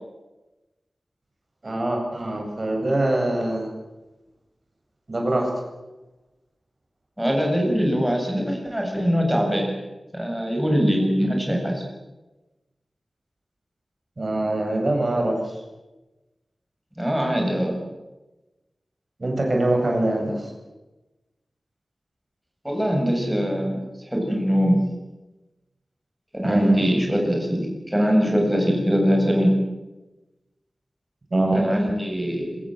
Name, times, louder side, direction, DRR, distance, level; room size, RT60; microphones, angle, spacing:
voice 1, 1.6-3.7 5.1-5.5 14.2-15.5 19.2-20.5 26.4-26.9 31.3-31.7, right 1 dB, 40° right, 2 dB, 7.6 m, -23 dB
voice 2, 7.2-9.8 10.1-11.8 17.0-17.8 22.6-24.8 26.3-29.6 31.5-32.6, equal, 5° right, 0 dB, 7.4 m, -22 dB
27.0 x 25.5 x 7.9 m, 1.1 s
wide cardioid pair, 100°, 0 cm